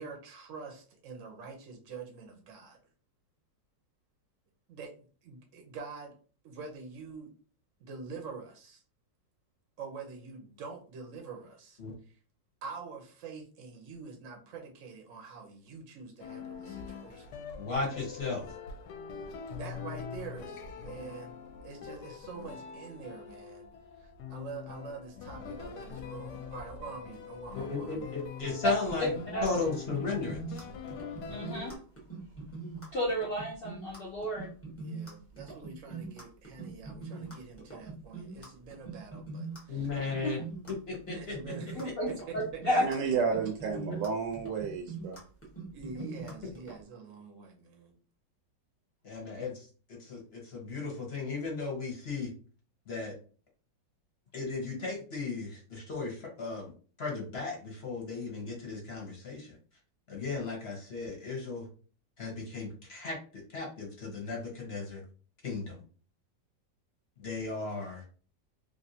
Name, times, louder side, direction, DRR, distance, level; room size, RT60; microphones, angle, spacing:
voice 1, 0.0-2.8 4.7-6.1 6.4-7.3 7.8-8.8 9.8-11.8 12.1-12.2 12.6-17.4 19.5-21.4 21.6-23.6 24.0-28.2 34.8-39.9 41.1-41.9 42.3-43.1 45.7-47.9, right 5 dB, 60° right, 2 dB, 0.9 m, -45 dB
sound 1, 16.2-31.8, left 6 dB, 70° left, 1.1 m, -43 dB
voice 2, 17.6-18.4 27.5-30.6 39.7-40.4 40.9-41.4 49.0-49.7 50.0-52.3 52.9-53.1 54.3-56.7 57.0-59.6 60.1-61.6 62.2-63.2 63.5-65.0 65.4-65.8 67.2-68.0, left 4 dB, 45° left, -2 dB, 0.9 m, -36 dB
sound 2, 28.9-46.8, right 4 dB, 10° left, 0.7 m, -43 dB
voice 3, 31.3-31.7 32.9-34.5 40.2-40.3 41.7-42.9, equal, 90° left, -3 dB, 0.5 m, -31 dB
voice 4, 42.8-45.2, right 5 dB, 80° right, 2 dB, 1.2 m, -31 dB
3.2 x 2.6 x 2.7 m, 0.40 s
omnidirectional pair, 1.9 m